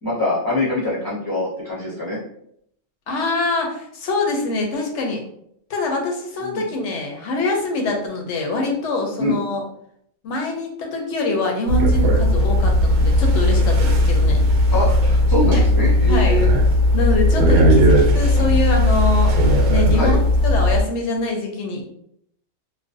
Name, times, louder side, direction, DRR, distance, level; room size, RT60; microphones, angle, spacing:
voice 1, 0.0-2.2 6.4-6.6 9.2-9.4 14.7-16.5 17.4-17.9 19.9-20.1, left 1 dB, 20° left, -7 dB, 0.6 m, -24 dB
voice 2, 3.1-5.2 5.7-9.6 10.2-14.4 16.1-16.4 16.9-19.4 19.7-20.2 20.4-21.8, left 2 dB, 65° left, 1 dB, 0.8 m, -24 dB
sound 1, 11.7-20.8, left 1 dB, 75° right, 0.9 m, -16 dB
2.4 x 2.1 x 2.5 m, 0.70 s
omnidirectional pair, 1.4 m